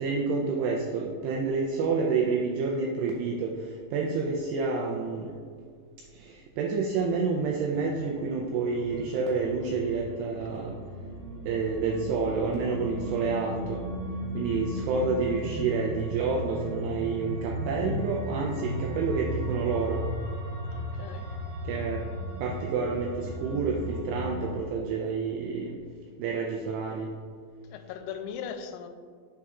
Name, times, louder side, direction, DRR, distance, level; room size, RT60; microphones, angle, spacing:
voice 1, 0.0-3.5 3.9-5.3 6.2-10.7 11.5-13.8 14.3-20.0 21.7-22.0 22.4-25.7 26.2-27.1, right 4 dB, 90° right, 0 dB, 2.4 m, -29 dB
sound 1, 6.9-24.6, equal, 75° right, 3.3 m, -36 dB
voice 2, 20.7-21.3 27.7-28.9, left 7 dB, 90° left, 7 dB, 3.0 m, -39 dB
6.8 x 6.2 x 2.3 m, 2.1 s
omnidirectional pair, 5.4 m